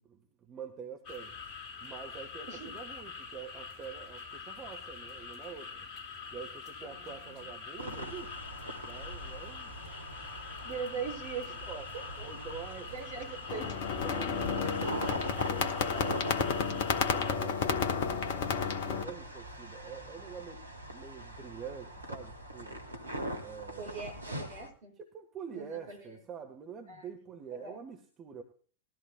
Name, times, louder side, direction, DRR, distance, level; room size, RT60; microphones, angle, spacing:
voice 1, 0.0-1.3 1.8-5.9 6.3-8.4 8.7-9.7 11.6-11.9 12.2-12.9 14.0-18.3 18.8-20.6 20.9-22.8 23.4-23.9 25.0-28.4, right 7 dB, 25° right, 5 dB, 1.3 m, -46 dB
sound 1, 1.0-17.3, left 6 dB, 35° left, 2.5 m, -45 dB
voice 2, 6.8-7.5 10.6-11.6 11.9-12.3 12.9-13.8 14.1-14.4 23.8-25.0 25.5-26.2 26.9-27.1 27.5-27.8, right 6 dB, 60° right, 1 dB, 6.2 m, -41 dB
sound 2, 7.8-24.7, right 1 dB, 80° right, 1.4 m, -42 dB
sound 3, 13.5-19.0, left 6 dB, 50° left, 1.1 m, -31 dB
20.0 x 13.5 x 2.2 m, 0.40 s
figure-of-eight pair, 90°, 0 cm